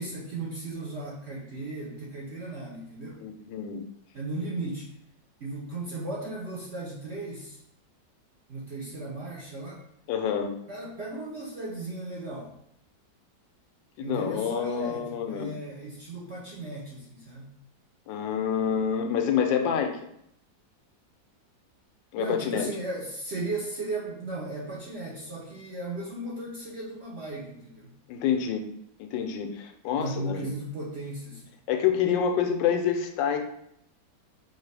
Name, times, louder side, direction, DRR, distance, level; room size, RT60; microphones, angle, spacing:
voice 1, 0.0-3.3 4.1-4.9 5.4-7.6 8.5-9.8 10.7-12.6 14.0-17.5 22.1-28.0 29.9-31.5, right 2 dB, 55° right, -6 dB, 0.8 m, -36 dB
voice 2, 3.2-3.8 10.1-10.5 14.0-15.5 18.1-20.1 22.1-22.7 28.1-28.6 29.0-30.5 31.7-33.4, left 8 dB, 80° left, 5 dB, 1.3 m, -27 dB
5.1 x 2.7 x 3.3 m, 0.73 s
omnidirectional pair, 2.0 m